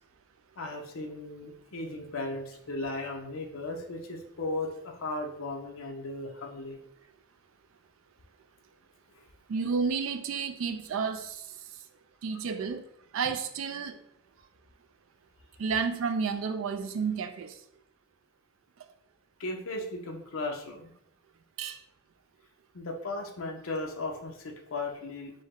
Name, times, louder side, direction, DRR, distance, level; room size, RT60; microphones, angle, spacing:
voice 1, 0.6-6.8 19.4-20.9 22.7-25.3, left 2 dB, 80° left, 0.7 m, -36 dB
voice 2, 9.5-11.4 12.2-12.8 13.1-14.0 15.6-17.5 21.6-21.8, right 5 dB, 75° right, 0.4 m, -31 dB
5.2 x 2.1 x 3.6 m
head